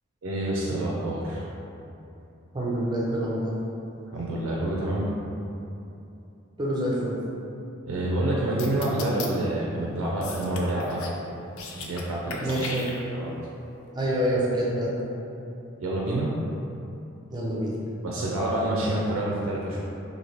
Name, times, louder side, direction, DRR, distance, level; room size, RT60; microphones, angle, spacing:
voice 1, 0.2-1.5 4.1-5.1 7.9-11.1 11.8-12.5 13.1-13.3 15.8-16.3 18.0-19.8, right 1 dB, 80° right, -4 dB, 0.4 m, -27 dB
voice 2, 2.5-3.5 6.6-7.1 12.4-12.9 13.9-15.0 17.3-17.7, right 1 dB, 20° right, -5 dB, 0.5 m, -26 dB
sound 1, 8.6-9.3 10.2-11.2 11.5-12.0 12.3-13.3, left 4 dB, 85° left, 0.4 m, -37 dB
3.0 x 2.6 x 2.9 m, 2.8 s
head